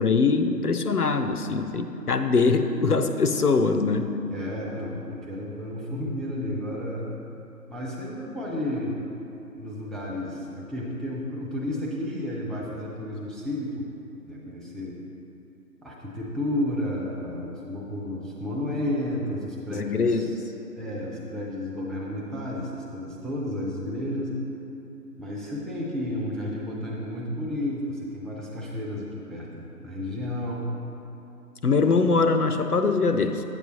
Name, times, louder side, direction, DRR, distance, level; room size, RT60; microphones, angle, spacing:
voice 1, 0.0-4.1 19.7-20.3 31.6-33.4, left 4 dB, 65° left, 7 dB, 0.6 m, -22 dB
voice 2, 4.3-7.1 7.7-9.0 9.6-13.9 14.3-15.0 15.8-20.4 20.8-24.3 25.2-30.7, left 1 dB, ahead, -5 dB, 0.6 m, -32 dB
8.7 x 7.9 x 3.0 m, 2.9 s
figure-of-eight pair, 175°, 49 cm